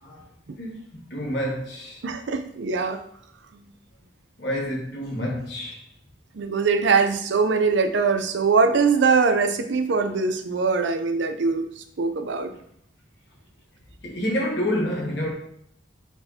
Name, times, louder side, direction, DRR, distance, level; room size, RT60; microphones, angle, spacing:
voice 1, 0.6-2.0 4.4-5.8 14.0-15.3, equal, 60° left, -3 dB, 1.2 m, -28 dB
voice 2, 2.0-3.0 6.3-12.5, right 4 dB, 70° right, 7 dB, 0.5 m, -22 dB
4.4 x 4.2 x 2.7 m, 0.71 s
head